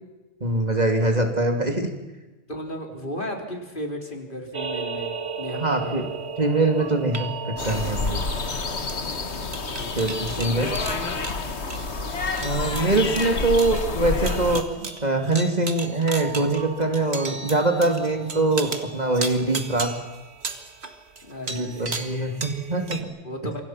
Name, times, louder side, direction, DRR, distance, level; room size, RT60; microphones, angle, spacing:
voice 1, 0.4-1.9 5.6-6.1 6.4-8.2 10.0-10.7 12.4-19.9 21.5-23.1, right 2 dB, 35° right, 3 dB, 2.9 m, -23 dB
voice 2, 2.5-6.0 9.4-10.0 10.4-11.2 21.2-22.6 23.2-23.6, equal, 45° left, 2 dB, 4.1 m, -35 dB
sound 1, 4.5-23.0, right 4 dB, 60° right, 2.2 m, -35 dB
sound 2, 7.6-14.6, left 4 dB, 65° left, 1.8 m, -29 dB
28.0 x 25.0 x 5.9 m, 1.1 s
omnidirectional pair, 1.2 m